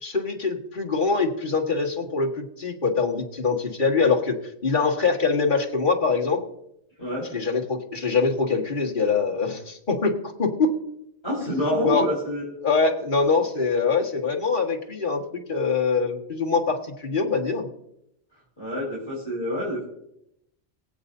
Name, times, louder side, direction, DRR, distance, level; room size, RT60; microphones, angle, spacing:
voice 1, 0.0-4.4 4.6-6.4 7.3-10.7 11.8-12.1 12.6-17.7, left 4 dB, 50° left, -1 dB, 1.9 m, -24 dB
voice 2, 11.2-12.5 18.6-19.8, equal, 25° left, -6 dB, 4.1 m, -27 dB
23.0 x 8.1 x 2.7 m, 0.78 s
omnidirectional pair, 1.1 m